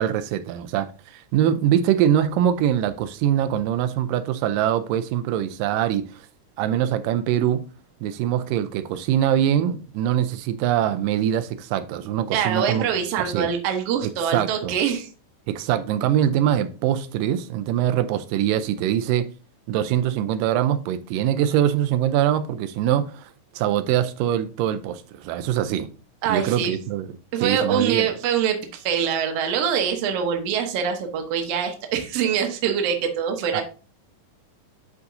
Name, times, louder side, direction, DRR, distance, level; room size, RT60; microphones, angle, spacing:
voice 1, 0.0-6.1 6.6-7.6 8.0-12.9 13.2-13.5 14.0-14.7 15.5-19.3 19.7-23.3 23.6-25.9 26.3-27.1 27.4-28.1 33.5-33.6, right 10 dB, 90° right, 2.3 m, -23 dB
voice 2, 12.3-15.1 26.2-26.8 27.3-33.6, right 8 dB, 60° right, 1.7 m, -24 dB
9.6 x 4.8 x 2.6 m
omnidirectional pair, 3.8 m